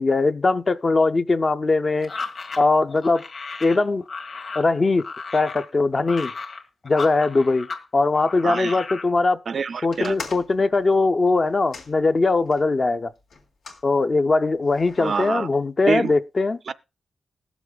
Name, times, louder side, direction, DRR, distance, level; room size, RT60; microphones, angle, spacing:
voice 1, 0.0-2.1 2.6-3.2 3.6-4.0 4.5-5.0 5.3-6.3 6.8-7.7 7.9-9.4 9.8-13.1 13.8-16.6, left 3 dB, 30° left, 0.5 m, -20 dB
sound 1, 2.0-7.8 8.1-9.1, left 4 dB, 50° left, 1.7 m, -35 dB
voice 2, 8.4-8.8 9.5-10.1 15.0-15.5 15.9-16.1 16.7-16.8, right 5 dB, 50° right, 0.4 m, -26 dB
sound 2, 9.9-12.7 13.3-13.9 14.6-15.3, left 4 dB, 90° left, 2.1 m, -41 dB
20.5 x 7.1 x 2.3 m
wide cardioid pair, 170°, 0 cm